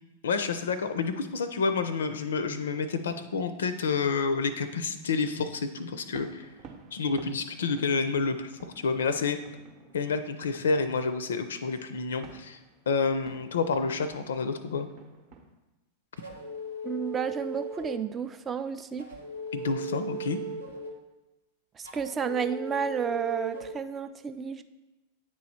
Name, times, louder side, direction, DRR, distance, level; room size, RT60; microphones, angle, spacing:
voice 1, 0.2-6.5 6.9-9.4 9.9-12.6 12.9-14.9 19.5-20.4, left 4 dB, 65° left, 11 dB, 0.4 m, -29 dB
sound 1, 6.1-15.5, right 4 dB, 40° right, 0.7 m, -52 dB
sound 2, 16.2-18.1 19.0-21.0 21.8-23.7, right 2 dB, 80° right, 1.0 m, -38 dB
voice 2, 16.8-19.0 21.8-24.6, right 7 dB, 20° right, 10 dB, 0.3 m, -31 dB
9.2 x 3.1 x 4.2 m, 1.0 s
figure-of-eight pair, 90°, 0 cm